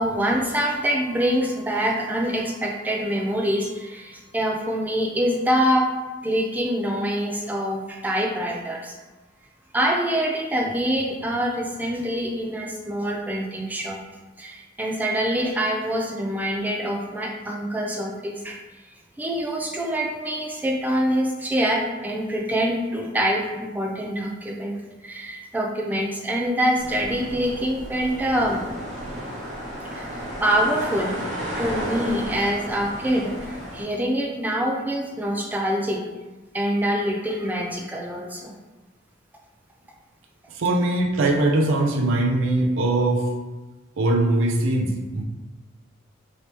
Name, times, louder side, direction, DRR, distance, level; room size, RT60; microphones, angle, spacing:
voice 1, 0.0-5.9 6.2-9.0 9.7-14.0 14.4-18.6 19.2-28.6 29.9-31.2 31.6-36.0 36.5-38.5, equal, 10° right, -1 dB, 0.4 m, -25 dB
sound 1, 26.8-33.8, equal, 40° right, 0.8 m, -33 dB
voice 2, 40.5-43.3 44.0-45.2, right 2 dB, 85° right, 2 dB, 0.5 m, -21 dB
3.3 x 2.8 x 2.9 m, 1.2 s
head